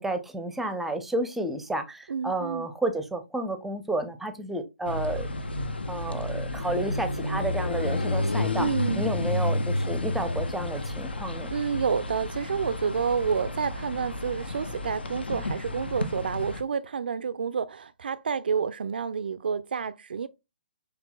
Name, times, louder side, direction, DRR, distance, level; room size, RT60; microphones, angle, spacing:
voice 1, 0.0-5.3 5.9-8.7 9.0-11.5, right 2 dB, 5° right, 0.6 m, -31 dB
voice 2, 2.1-2.7 8.6-9.1 11.5-20.3, right 6 dB, 65° right, 0.3 m, -29 dB
sound 1, 4.8-16.6, left 2 dB, 75° left, 0.6 m, -31 dB
6.1 x 3.4 x 2.2 m
figure-of-eight pair, 130°, 6 cm